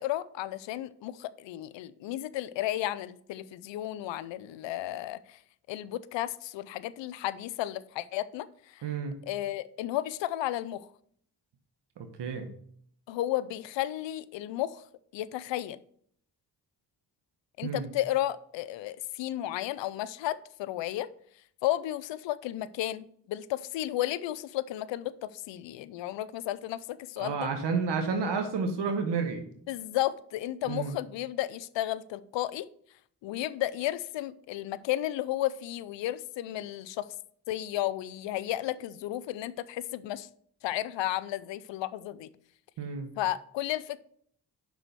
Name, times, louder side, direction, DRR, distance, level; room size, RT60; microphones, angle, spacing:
voice 1, 0.0-5.4 5.7-8.8 9.2-10.9 13.1-14.8 15.1-15.8 17.6-21.1 21.6-27.5 29.7-32.7 33.2-37.1 37.5-40.3 40.6-42.3 43.2-44.0, left 14 dB, 85° left, 0.5 m, -33 dB
voice 2, 8.8-9.1 12.0-12.5 17.6-17.9 27.2-29.5 30.7-31.0 42.8-43.1, right 5 dB, 70° right, 1.1 m, -31 dB
5.9 x 4.7 x 6.5 m
supercardioid pair, 45°, 43 cm